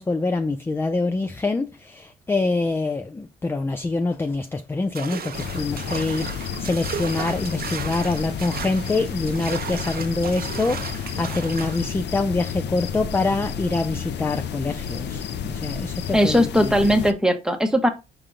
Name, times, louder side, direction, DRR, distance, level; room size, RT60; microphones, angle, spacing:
voice 1, 0.0-16.7, left 3 dB, 10° left, 0.3 m, -25 dB
sound 1, 5.0-11.9, right 7 dB, 50° right, 0.6 m, -35 dB
sound 2, 5.3-17.1, left 7 dB, 60° left, 0.6 m, -31 dB
voice 2, 16.1-17.9, equal, 5° right, 0.8 m, -19 dB
5.0 x 3.0 x 3.6 m
cardioid pair, 90°, 20 cm